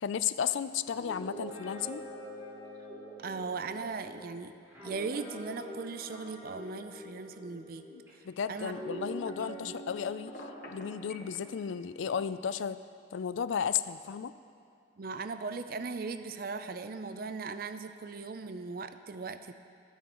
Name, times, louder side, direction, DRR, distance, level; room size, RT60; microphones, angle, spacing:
voice 1, 0.0-2.0 7.9-10.3 10.7-12.8 13.1-14.3, left 8 dB, 75° left, 14 dB, 0.4 m, -34 dB
Guitar, 0.9-8.1 8.5-12.3, equal, 15° right, 2.5 m, -45 dB
voice 2, 3.2-4.5 4.8-7.9 8.5-8.7 9.4-9.8 15.0-19.5, right 4 dB, 50° right, 10 dB, 0.5 m, -38 dB
Telephone, 10.3-11.4, left 2 dB, 45° left, 1.2 m, -45 dB
19.0 x 9.3 x 3.0 m, 2.5 s
head